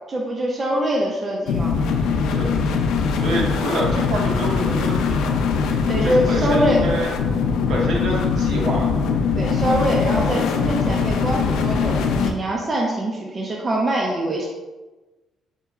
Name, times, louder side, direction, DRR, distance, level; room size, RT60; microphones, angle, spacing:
voice 1, 0.1-1.8 5.9-6.8 9.4-14.5, right 1 dB, 20° right, -2 dB, 0.4 m, -23 dB
sound 1, 1.5-12.3, left 5 dB, 90° left, 0.3 m, -21 dB
sound 2, 1.6-11.7, left 1 dB, 25° left, 0.9 m, -37 dB
voice 2, 3.1-5.3 6.0-7.1 7.7-9.0, right 1 dB, 60° right, -2 dB, 0.9 m, -27 dB
4.3 x 3.8 x 2.3 m, 1.2 s
cardioid pair, 175°, 0 cm